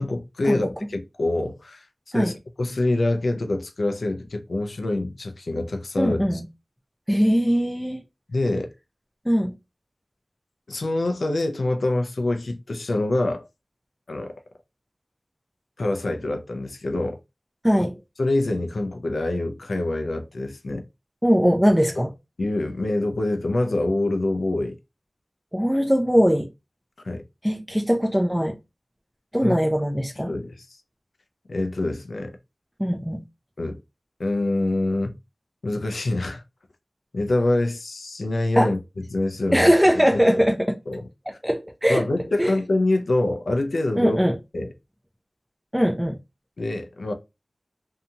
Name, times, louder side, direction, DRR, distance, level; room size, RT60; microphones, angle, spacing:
voice 1, 0.0-1.9 2.1-2.3 2.6-6.4 8.3-8.7 10.7-13.5 14.1-14.3 15.8-17.2 18.2-20.9 22.4-24.8 27.0-27.2 29.4-29.6 30.2-30.7 31.5-32.3 33.6-33.8 34.2-35.2 35.6-36.4 37.1-38.8 39.1-39.7 40.1-40.2 40.9-41.1 41.9-44.2 44.5-44.7 46.6-47.1, left 2 dB, 90° left, 0.4 m, -25 dB
voice 2, 6.0-6.4 7.1-8.0 9.3-9.5 17.6-17.9 21.2-22.1 25.5-26.5 27.4-28.6 29.3-30.3 32.8-33.2 38.6-38.7 39.5-40.8 41.4-42.0 42.4-42.5 44.0-44.4 45.7-46.2, equal, 5° right, 0.4 m, -20 dB
2.7 x 2.7 x 2.2 m
wide cardioid pair, 55°, 0 cm